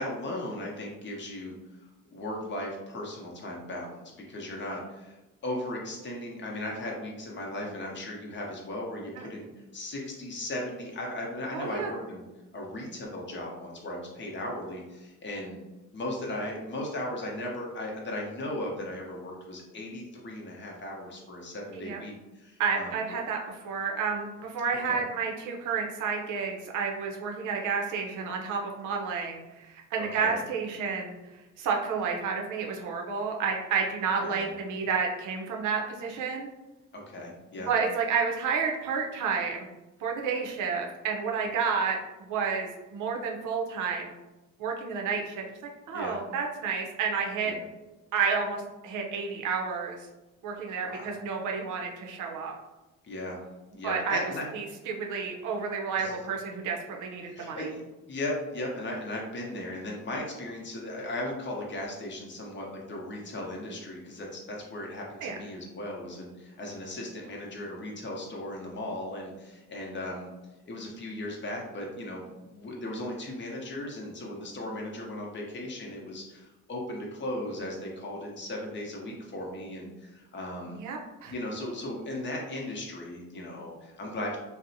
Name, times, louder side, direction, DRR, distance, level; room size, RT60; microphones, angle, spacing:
voice 1, 0.0-1.5 2.1-5.2 5.4-9.5 9.7-12.2 12.5-15.6 15.9-23.0 24.8-25.0 30.0-30.4 34.2-34.5 36.9-37.7 45.9-46.2 47.4-47.6 50.8-51.2 53.0-53.4 53.7-54.5 56.0-56.2 57.3-57.8 58.1-70.3 70.7-80.8 81.3-84.4, left 1 dB, 40° left, -1 dB, 0.7 m, -37 dB
voice 2, 11.5-11.9 21.7-22.0 22.6-31.2 31.6-36.5 37.7-39.7 40.0-42.0 42.3-44.1 44.6-45.4 45.9-47.5 48.1-50.0 50.4-52.5 53.8-54.2 54.5-57.7 65.2-65.4 80.7-81.3, right 5 dB, 80° right, 0 dB, 0.6 m, -30 dB
2.6 x 2.0 x 2.6 m, 1.1 s
cardioid pair, 90°, 30 cm